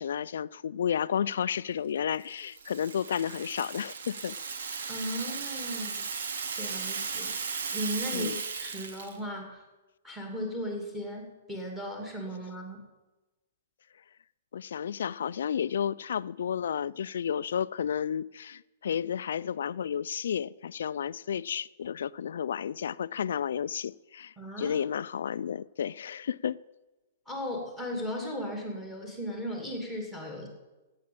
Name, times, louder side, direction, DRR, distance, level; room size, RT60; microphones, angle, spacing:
voice 1, 0.0-4.4 8.1-8.4 14.5-26.6, left 8 dB, 80° left, 0.4 m, -32 dB
Rattle (instrument), 2.2-9.2, right 5 dB, 90° right, 1.6 m, -36 dB
voice 2, 4.9-6.0 6.5-8.3 8.6-9.6 10.0-12.8 24.4-24.8 27.3-30.5, equal, 5° right, 2.4 m, -36 dB
13.0 x 8.5 x 8.6 m
hypercardioid pair, 170°, 0 cm